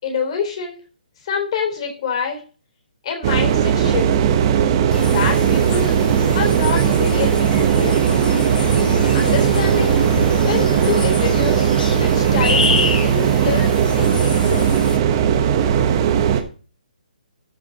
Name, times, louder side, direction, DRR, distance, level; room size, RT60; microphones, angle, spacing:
voice 1, 0.0-0.8 1.2-2.4 3.0-4.1 5.0-6.0 6.3-8.3 9.1-10.0 10.4-11.8 12.0-12.6 13.0-13.7 14.0-14.7, left 6 dB, 35° left, 2 dB, 3.7 m, -26 dB
sound 1, 3.2-16.4, right 8 dB, 30° right, 1.1 m, -17 dB
sound 2, 4.9-15.0, left 4 dB, 75° left, 2.0 m, -27 dB
13.5 x 4.9 x 4.1 m, 0.37 s
hypercardioid pair, 165°, 5 cm